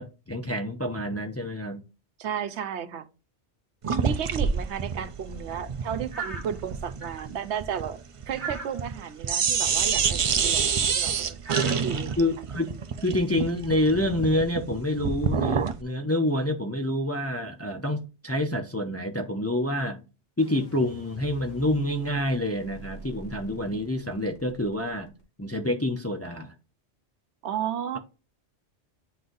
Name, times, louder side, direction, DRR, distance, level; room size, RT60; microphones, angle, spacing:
voice 1, 0.0-1.8 12.2-12.8 13.0-20.0 20.4-25.1 25.4-26.5, left 1 dB, 20° left, 0.5 m, -27 dB
voice 2, 2.2-3.1 4.0-8.0 8.3-12.1 27.4-28.0, right 8 dB, 80° right, 1.0 m, -33 dB
sound 1, 3.8-9.0 9.2-15.8, right 6 dB, 60° right, 0.3 m, -27 dB
sound 2, 6.1-6.6 7.0-7.3 8.4-8.9 10.8-10.9 11.4-12.1 14.4-14.5, right 4 dB, 10° right, 1.1 m, -37 dB
sound 3, 20.4-25.4, equal, 75° left, 2.0 m, -46 dB
9.5 x 3.9 x 2.6 m
omnidirectional pair, 1.2 m